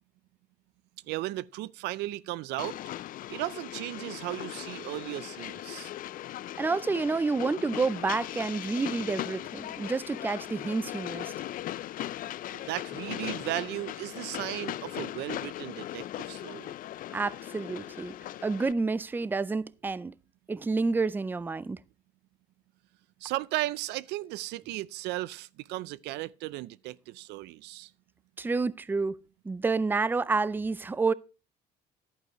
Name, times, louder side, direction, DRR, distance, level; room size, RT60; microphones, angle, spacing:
voice 1, 1.0-2.8 3.3-5.9 12.5-16.8 23.2-27.9, right 17 dB, 85° right, 0.5 m, -36 dB
Train, 2.6-18.7, left 13 dB, 55° left, 0.4 m, -39 dB
voice 2, 6.6-11.3 17.1-20.1 20.5-21.8 28.4-29.2 29.4-31.1, right 4 dB, 10° right, 0.4 m, -29 dB
11.0 x 9.4 x 3.0 m
cardioid pair, 110°, 17 cm